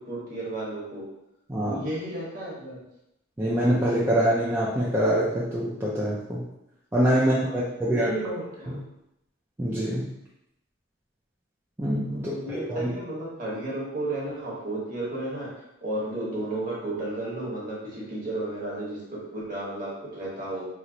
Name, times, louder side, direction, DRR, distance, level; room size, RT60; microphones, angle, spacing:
voice 1, 0.1-1.0 1.7-2.8 7.4-7.6 7.9-8.7 12.1-15.5 15.8-20.7, right 1 dB, 40° right, -6 dB, 1.1 m, -33 dB
voice 2, 1.5-1.8 3.4-6.4 6.9-8.1 8.7-8.8 9.6-10.1 11.8-12.9, right 1 dB, 10° right, -7 dB, 0.4 m, -25 dB
3.0 x 2.0 x 3.7 m, 0.85 s
head